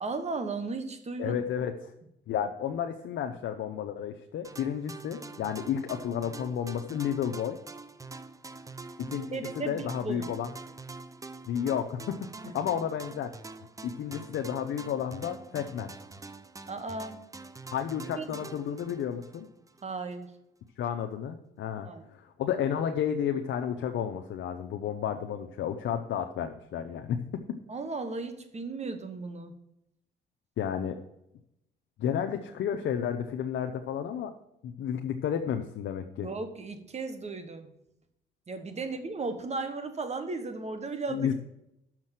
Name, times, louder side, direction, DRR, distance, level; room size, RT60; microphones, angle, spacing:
voice 1, 0.0-1.4 9.3-10.3 16.7-17.2 18.2-18.4 19.8-20.3 21.8-22.0 27.7-29.5 36.2-37.7 38.5-41.3, right 3 dB, 35° right, 8 dB, 1.3 m, -35 dB
voice 2, 1.2-1.9 2.3-7.6 9.0-10.5 11.5-13.3 13.8-15.9 17.7-19.5 20.8-27.4 30.6-31.0 32.0-34.3 34.6-36.3 41.1-41.3, left 8 dB, 70° left, 5 dB, 0.7 m, -32 dB
sound 1, 4.4-19.9, right 3 dB, 15° right, 0.5 m, -45 dB
6.5 x 6.1 x 7.5 m, 0.83 s
cardioid pair, 90°, 20 cm